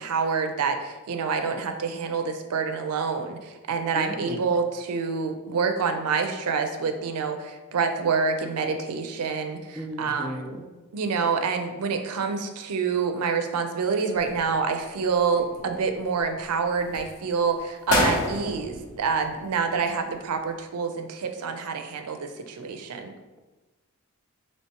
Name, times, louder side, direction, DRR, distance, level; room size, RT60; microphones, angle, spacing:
voice 1, 0.0-10.5 10.9-23.2, right 5 dB, 90° right, 6 dB, 0.4 m, -27 dB
voice 2, 3.9-4.4 9.8-10.7, equal, 5° right, 0 dB, 0.3 m, -35 dB
sound 1, 14.1-14.9 15.3-16.2 16.7-17.1 17.6-17.7 17.9-19.8 20.1-20.2, left 1 dB, 75° left, 0.8 m, -28 dB
4.4 x 3.0 x 2.9 m, 1.2 s
head